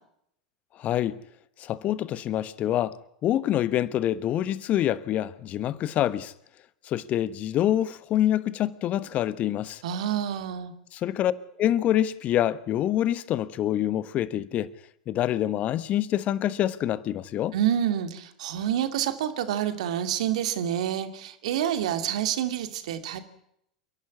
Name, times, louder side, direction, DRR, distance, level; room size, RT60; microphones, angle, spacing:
voice 1, 0.8-1.2 1.6-6.3 6.8-9.8 10.9-11.3 11.6-14.7 15.1-17.5, left 12 dB, 40° left, 1.2 m, -26 dB
voice 2, 9.8-10.7 17.5-23.2, right 10 dB, 65° right, 2.6 m, -28 dB
29.0 x 11.5 x 9.7 m
figure-of-eight pair, 90°, 4 cm